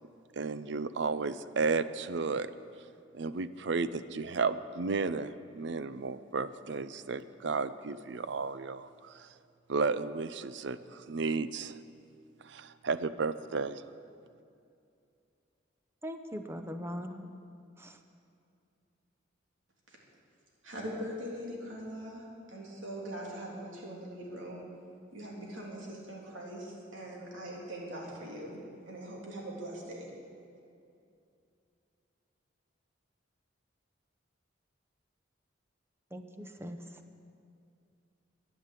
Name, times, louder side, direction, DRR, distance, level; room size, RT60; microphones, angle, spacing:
voice 1, 0.4-2.5 3.1-9.3 9.7-11.8 12.4-13.8, right 4 dB, 65° right, 14 dB, 0.5 m, -33 dB
voice 2, 16.0-17.3 17.8-18.0 36.1-37.0, equal, 15° right, 6 dB, 0.8 m, -41 dB
voice 3, 20.6-24.7 25.1-30.1, equal, 90° right, -3 dB, 3.3 m, -42 dB
13.0 x 10.0 x 8.3 m, 2.5 s
head